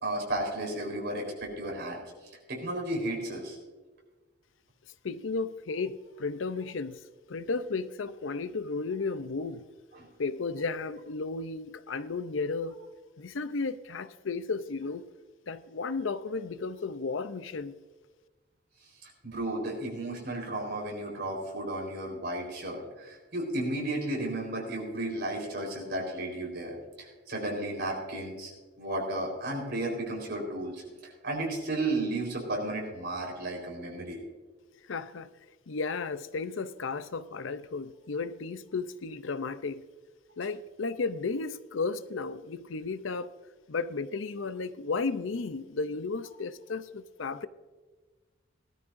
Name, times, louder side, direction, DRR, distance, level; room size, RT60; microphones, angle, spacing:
voice 1, 0.0-2.0 2.5-3.6 10.0-10.1 19.0-28.5 28.8-34.2, right 1 dB, 60° right, 4.2 m, -33 dB
voice 2, 5.0-7.0 7.3-9.7 10.2-12.8 13.2-15.0 15.5-17.8 34.8-35.3 35.7-39.8 40.4-43.3 43.7-47.5, left 4 dB, 75° left, 0.6 m, -34 dB
18.5 x 12.5 x 2.6 m
head